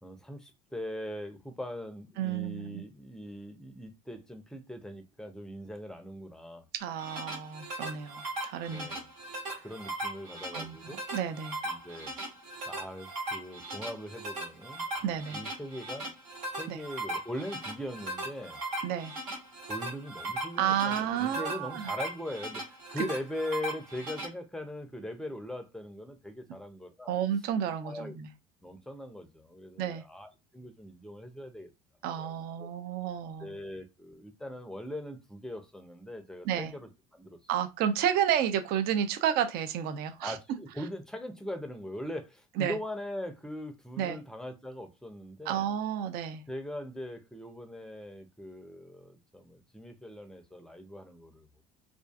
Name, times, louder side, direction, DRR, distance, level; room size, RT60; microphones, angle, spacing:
voice 1, 0.0-6.6 8.7-9.1 9.6-11.0 11.6-12.1 12.7-15.0 15.3-16.1 16.6-18.6 19.7-27.2 27.8-28.2 28.6-31.7 32.2-32.3 32.6-32.7 33.4-37.4 40.2-45.7 46.5-51.6, left 1 dB, 5° left, 0.5 m, -41 dB
voice 2, 2.2-2.8 6.7-8.9 10.5-11.6 15.0-15.4 16.7-16.8 18.8-19.1 20.6-21.9 27.1-28.3 29.8-30.0 32.0-33.6 36.5-36.7 37.5-40.4 42.6-42.8 44.0-44.2 45.5-46.4, right 9 dB, 60° right, 0.4 m, -31 dB
sound 1, 6.8-24.3, right 1 dB, 80° right, 1.6 m, -38 dB
2.4 x 2.3 x 2.3 m
hypercardioid pair, 80°, 18 cm